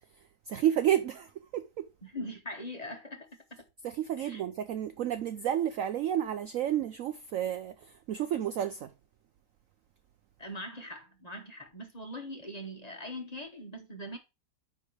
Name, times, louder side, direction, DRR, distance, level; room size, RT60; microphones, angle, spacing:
voice 1, 0.5-1.9 3.8-8.9, right 10 dB, 75° right, 0.7 m, -31 dB
voice 2, 2.0-3.6 4.2-4.4 10.4-14.2, left 1 dB, 25° left, 1.1 m, -42 dB
9.6 x 3.5 x 4.5 m
omnidirectional pair, 1.9 m